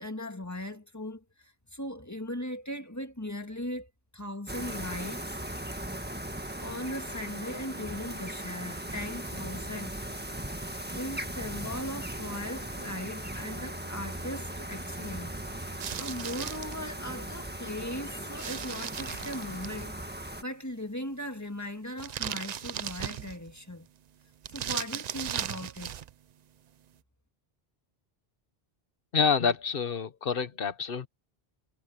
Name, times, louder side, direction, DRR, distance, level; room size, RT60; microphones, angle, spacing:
voice 1, 0.0-5.4 6.6-10.0 10.6-23.9 24.5-26.0, left 1 dB, 15° left, 1.8 m, -39 dB
sound 1, 4.5-20.4, right 1 dB, 10° right, 1.5 m, -38 dB
sound 2, 6.8-19.2, right 1 dB, 30° right, 2.6 m, -54 dB
sound 3, 15.8-16.7 18.4-19.8 22.0-23.5 24.4-26.1, right 9 dB, 55° right, 0.5 m, -37 dB
voice 2, 29.1-31.1, left 6 dB, 60° left, 1.2 m, -27 dB
omnidirectional pair, 1.1 m